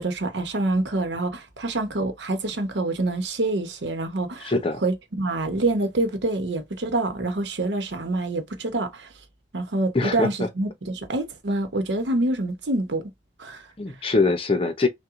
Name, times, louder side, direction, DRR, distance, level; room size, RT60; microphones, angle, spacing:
voice 1, 0.0-4.5 4.8-9.1 9.5-13.0 13.4-13.7, right 2 dB, 80° right, 0.9 m, -26 dB
voice 2, 4.4-4.8 9.9-10.5 13.8-14.9, left 3 dB, 30° left, 0.6 m, -23 dB
5.8 x 2.2 x 2.5 m
head